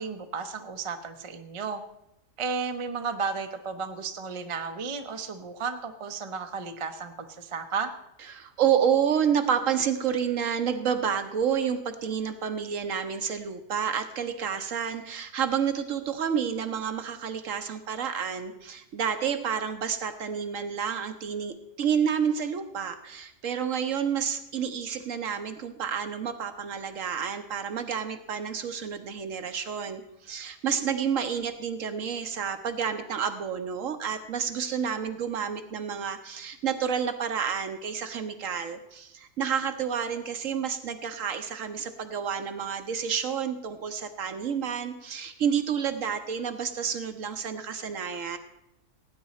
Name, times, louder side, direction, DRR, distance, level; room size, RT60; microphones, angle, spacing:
voice 1, 0.0-1.8 2.4-7.9, right 5 dB, 35° right, 7 dB, 0.5 m, -33 dB
voice 2, 8.3-48.4, right 7 dB, 60° right, 9 dB, 1.0 m, -29 dB
17.5 x 9.2 x 4.2 m, 0.85 s
omnidirectional pair, 1.7 m